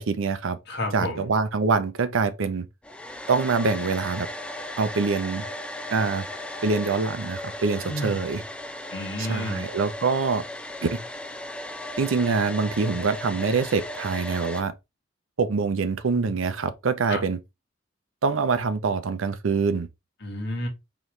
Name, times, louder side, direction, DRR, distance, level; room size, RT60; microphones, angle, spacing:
voice 1, 0.0-0.6 0.9-2.7 3.3-4.3 4.8-5.4 5.9-6.3 6.6-8.4 9.2-10.4 10.8-11.0 12.0-14.7 15.4-17.4 18.2-19.9, right 4 dB, 85° right, 0.5 m, -25 dB
voice 2, 0.7-1.3 7.8-8.3 8.9-9.7 17.1-17.2 20.2-20.7, left 1 dB, 60° left, 1.5 m, -31 dB
Domestic sounds home sounds, 2.8-14.6, left 1 dB, 5° left, 0.3 m, -36 dB
4.0 x 3.0 x 3.2 m
head